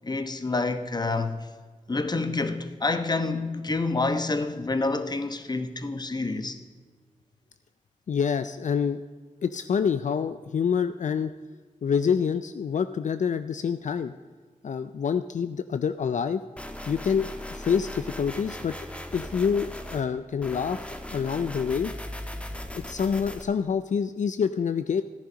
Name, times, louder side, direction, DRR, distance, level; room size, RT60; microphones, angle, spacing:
voice 1, 0.0-1.5 1.9-6.6, left 3 dB, 30° left, 1.0 m, -28 dB
voice 2, 8.1-9.0 9.4-11.3 11.8-14.1 14.6-16.4 16.9-18.8 19.1-20.9 21.1-21.9 22.8-25.0, left 6 dB, 65° left, 0.4 m, -27 dB
sound 1, 16.6-20.0 20.4-23.4, left 1 dB, 10° left, 1.3 m, -38 dB
14.5 x 10.5 x 5.1 m
wide cardioid pair, 90°, 13 cm